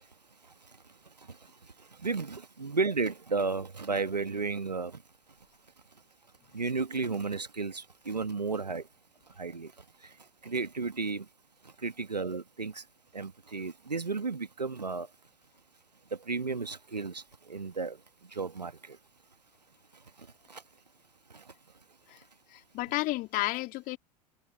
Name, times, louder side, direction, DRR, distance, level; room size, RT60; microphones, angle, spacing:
voice 1, 2.0-5.0 6.5-8.8 9.4-9.7 10.4-11.2 11.8-12.8 13.1-15.1 16.3-18.0 18.3-19.0 20.5-20.6 21.3-21.4, right 4 dB, 85° right, 1.6 m, -33 dB
voice 2, 22.5-24.0, left 19 dB, 45° left, 3.2 m, -32 dB
figure-of-eight pair, 75°, 21 cm